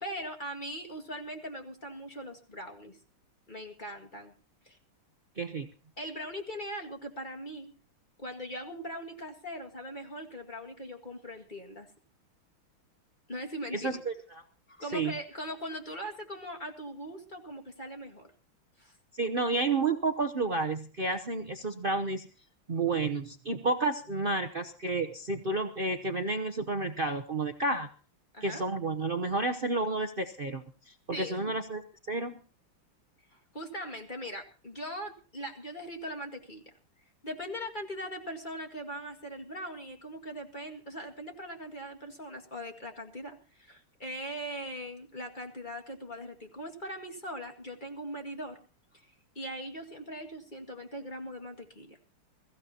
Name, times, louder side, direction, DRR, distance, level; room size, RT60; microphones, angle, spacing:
voice 1, 0.0-3.0 3.5-4.3 4.6-4.8 6.0-7.7 8.2-11.9 13.3-14.0 14.7-18.3 18.8-19.0 28.3-28.6 31.1-31.5 33.3-36.7 37.2-48.6 48.9-49.1 49.4-52.0, equal, 20° left, 2 dB, 2.0 m, -40 dB
voice 2, 5.4-5.7 13.7-14.1 14.9-15.1 19.2-22.3 22.7-27.9 28.4-31.8 32.1-32.3, right 3 dB, 75° right, 6 dB, 0.5 m, -30 dB
22.5 x 15.5 x 2.8 m, 0.36 s
omnidirectional pair, 2.4 m